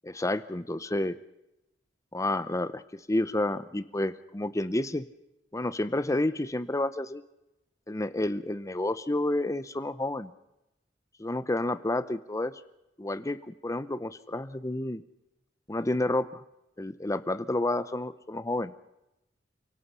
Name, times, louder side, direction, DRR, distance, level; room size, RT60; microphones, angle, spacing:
voice 1, 0.0-1.2 2.1-5.0 5.5-7.2 7.9-10.3 11.2-12.5 13.0-15.0 15.7-16.4 16.8-18.7, left 1 dB, 15° left, 14 dB, 0.7 m, -30 dB
29.5 x 18.0 x 5.6 m, 0.89 s
head